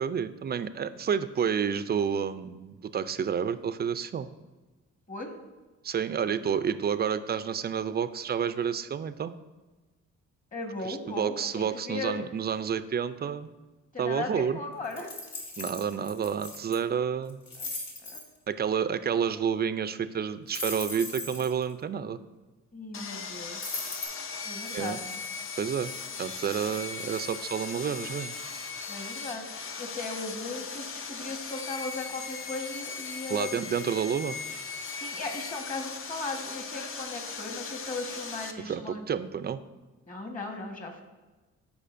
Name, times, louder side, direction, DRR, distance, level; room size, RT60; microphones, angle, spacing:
voice 1, 0.0-4.3 5.8-9.3 10.8-13.5 14.0-14.6 15.6-17.4 18.5-22.2 24.7-25.0 25.6-25.9 26.2-28.4 33.3-34.4 38.6-39.6, right 7 dB, 35° right, 12 dB, 0.4 m, -30 dB
voice 2, 10.5-12.2 13.9-15.1 17.6-17.7 18.0-18.2 22.7-23.8 24.4-25.2 28.9-29.5 29.8-33.5 34.9-39.1 40.1-41.0, left 3 dB, 25° left, 3 dB, 1.4 m, -37 dB
sound 1, 14.9-16.8 17.3-18.2 20.5-21.6 23.6-24.0, left 2 dB, 70° left, 2.0 m, -38 dB
Sawing, 22.9-38.5, left 5 dB, 45° left, 0.7 m, -38 dB
13.0 x 4.9 x 2.6 m, 1.2 s
cardioid pair, 90°, 30 cm